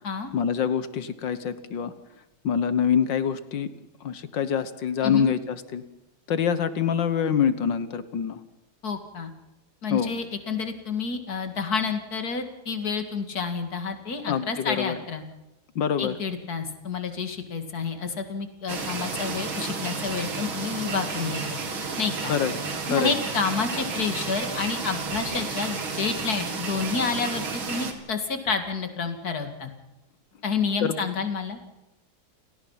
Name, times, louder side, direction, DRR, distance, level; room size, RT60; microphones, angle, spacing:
voice 1, 0.3-1.9 2.4-3.7 4.0-5.8 6.3-8.4 9.9-10.2 14.3-15.0 15.8-16.2 22.3-22.5 22.8-23.2 30.8-31.1, left 7 dB, 65° left, 13 dB, 1.8 m, -25 dB
voice 2, 8.8-9.3 9.8-15.2 16.0-21.4 22.0-22.3 22.9-29.7 30.4-31.6, left 5 dB, 50° left, 7 dB, 2.7 m, -29 dB
sound 1, 18.7-27.9, right 4 dB, 90° right, 3.2 m, -32 dB
30.0 x 18.0 x 5.8 m, 0.96 s
omnidirectional pair, 2.2 m